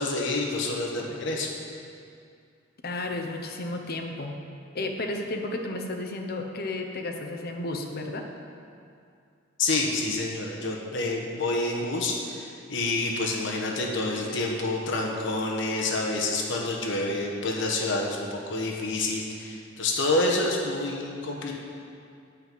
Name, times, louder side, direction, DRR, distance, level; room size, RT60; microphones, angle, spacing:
voice 1, 0.0-1.5 9.6-21.5, left 2 dB, 70° left, -1 dB, 1.1 m, -28 dB
voice 2, 2.8-4.4 4.7-8.3, left 2 dB, 55° left, 3 dB, 0.9 m, -32 dB
8.8 x 5.3 x 7.7 m, 2.4 s
head